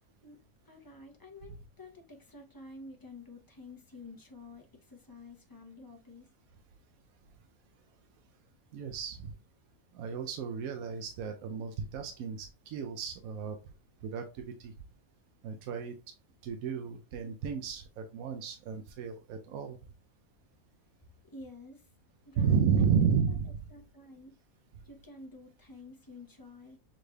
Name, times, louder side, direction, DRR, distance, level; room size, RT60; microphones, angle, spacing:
voice 1, 0.6-6.3 21.2-21.9 22.3-23.0 23.7-24.4 24.8-26.8, left 2 dB, 25° left, 0.5 m, -50 dB
voice 2, 8.7-9.3 9.9-13.6 14.0-14.7 15.4-15.9 16.4-19.8 22.4-23.5, right 6 dB, 85° right, 1.0 m, -32 dB
6.3 x 3.3 x 2.2 m
omnidirectional pair, 1.5 m